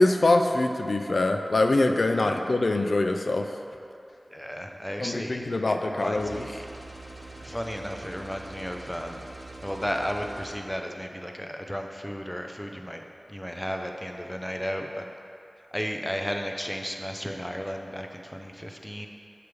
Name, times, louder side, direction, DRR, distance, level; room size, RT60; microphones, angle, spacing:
voice 1, 0.0-3.5 5.0-6.4, left 2 dB, 70° left, 5 dB, 0.4 m, -23 dB
voice 2, 4.3-6.6 7.4-9.3 9.6-13.0 13.3-15.1 15.7-19.1, equal, 10° left, 3 dB, 0.5 m, -34 dB
sound 1, 6.1-10.5, right 2 dB, 55° right, 0.8 m, -43 dB
6.8 x 3.3 x 4.6 m, 2.6 s
wide cardioid pair, 50°, 0 cm